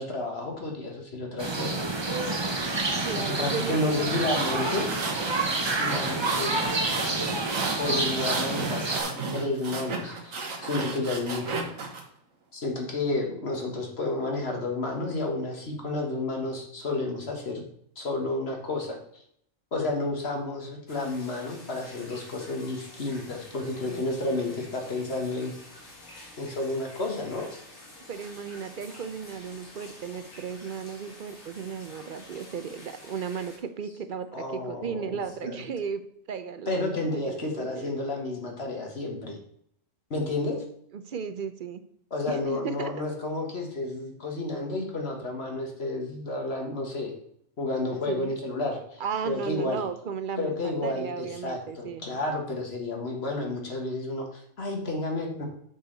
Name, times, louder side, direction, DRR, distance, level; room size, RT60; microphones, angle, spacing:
voice 1, 0.0-2.0 3.2-4.9 5.7-6.5 7.8-8.9 9.3-10.3 10.6-11.7 12.5-17.6 18.0-19.0 19.7-25.5 26.4-27.5 34.3-35.6 36.7-39.4 40.1-40.6 42.1-47.1 47.6-49.8 50.4-55.5, left 2 dB, 55° left, 1 dB, 1.8 m, -31 dB
sound 1, 1.4-9.0, right 2 dB, 25° right, 0.8 m, -29 dB
voice 2, 3.0-4.8 23.9-24.4 28.1-38.0 40.9-41.8 42.3-42.9 48.1-48.3 49.0-52.1, right 6 dB, 55° right, 10 dB, 0.6 m, -35 dB
sound 2, 4.1-12.0, right 3 dB, 85° right, 1.7 m, -33 dB
sound 3, 20.9-33.6, left 1 dB, 80° left, 2.5 m, -48 dB
7.1 x 6.6 x 4.0 m, 0.69 s
omnidirectional pair, 1.4 m